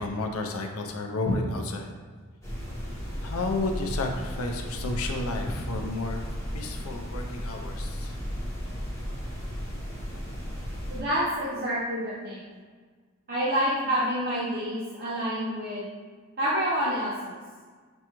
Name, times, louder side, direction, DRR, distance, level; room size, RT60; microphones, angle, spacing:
voice 1, 0.0-2.0 3.2-6.3 6.5-8.1, left 2 dB, 80° left, 3 dB, 0.5 m, -31 dB
sound 1, 2.4-11.0, equal, 15° left, 0.9 m, -35 dB
voice 2, 10.9-12.4 13.3-15.8 16.4-17.4, equal, 45° right, -10 dB, 0.8 m, -28 dB
6.0 x 2.3 x 2.9 m, 1.5 s
head